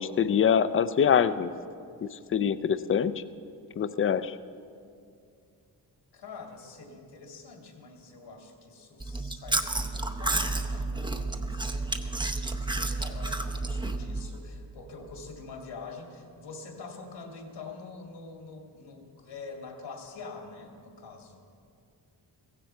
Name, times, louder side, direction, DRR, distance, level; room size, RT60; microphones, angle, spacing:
voice 1, 0.0-1.5 2.3-3.1 3.8-4.3, left 7 dB, 30° left, 14 dB, 0.4 m, -24 dB
voice 2, 6.1-12.1 12.5-21.4, left 4 dB, 80° left, 2 dB, 2.3 m, -45 dB
Chewing mastication, 9.0-14.3, right 2 dB, 10° right, 0.6 m, -31 dB
16.0 x 15.5 x 4.5 m, 2.4 s
wide cardioid pair, 110°, 41 cm